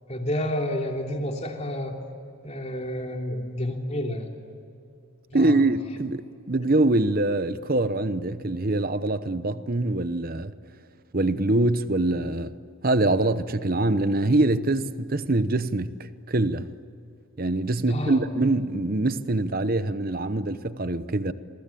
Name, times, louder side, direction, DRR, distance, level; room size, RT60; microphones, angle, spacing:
voice 1, 0.1-2.0 2.4-4.3 5.3-5.6 17.9-18.2, left 1 dB, 30° left, 3.1 m, -30 dB
voice 2, 5.3-10.5 11.1-12.5 12.8-16.7 17.4-21.3, right 2 dB, 40° right, 0.9 m, -24 dB
28.5 x 23.0 x 8.6 m
head